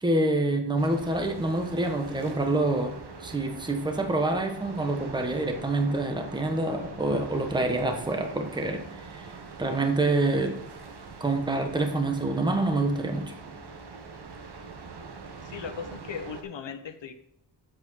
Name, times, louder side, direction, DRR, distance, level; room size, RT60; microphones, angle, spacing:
voice 1, 0.0-9.3 9.6-10.6 11.2-13.3, right 2 dB, 10° right, 5 dB, 1.1 m, -27 dB
sound 1, 0.8-16.4, right 4 dB, 60° right, 1.3 m, -43 dB
voice 2, 15.4-17.1, left 6 dB, 75° left, 6 dB, 1.0 m, -38 dB
8.1 x 7.6 x 4.0 m, 0.72 s
wide cardioid pair, 135°, 44 cm